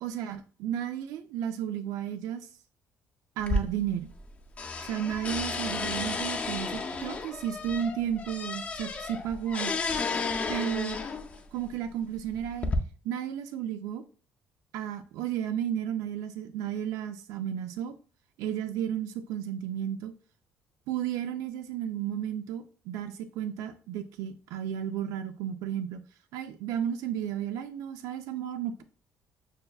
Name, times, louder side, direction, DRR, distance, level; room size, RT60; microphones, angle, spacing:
voice 1, 0.0-2.5 3.4-4.1 4.9-9.8 10.5-11.0 11.5-12.7 13.0-14.0 14.7-17.9 18.4-20.1 20.9-26.0 26.3-28.8, right 9 dB, 90° right, 9 dB, 0.3 m, -33 dB
sound 1, 3.4-4.3 4.6-11.4 12.1-12.8, left 3 dB, 25° left, 0.4 m, -33 dB
6.5 x 2.2 x 2.3 m, 0.40 s
cardioid pair, 160°, 6 cm